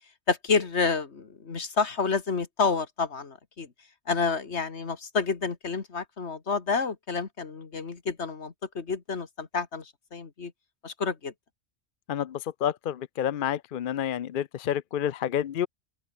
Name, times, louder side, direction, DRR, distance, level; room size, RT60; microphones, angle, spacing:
voice 1, 0.3-3.7 4.1-10.5 10.8-11.3, left 5 dB, 80° left, 2.1 m, -29 dB
voice 2, 12.1-15.7, left 10 dB, 55° left, 0.7 m, -29 dB
open air
omnidirectional pair, 1.1 m